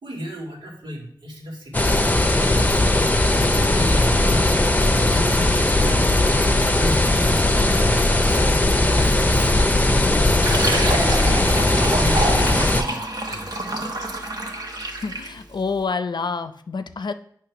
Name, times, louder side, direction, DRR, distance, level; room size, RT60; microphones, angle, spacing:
voice 1, 0.0-2.3 2.5-3.0 3.3-4.8 5.1-6.1 6.6-8.4 8.9-9.5 10.5-12.4 12.6-13.5, equal, 90° right, -2 dB, 2.0 m, -35 dB
sound 1, 1.7-12.8, left 1 dB, 20° left, 0.6 m, -18 dB
Fill (with liquid), 10.3-15.4, right 2 dB, 60° right, 1.2 m, -27 dB
voice 2, 14.7-17.1, left 4 dB, 70° left, 10 dB, 0.5 m, -28 dB
8.6 x 3.2 x 5.8 m, 0.63 s
wide cardioid pair, 70°, 8 cm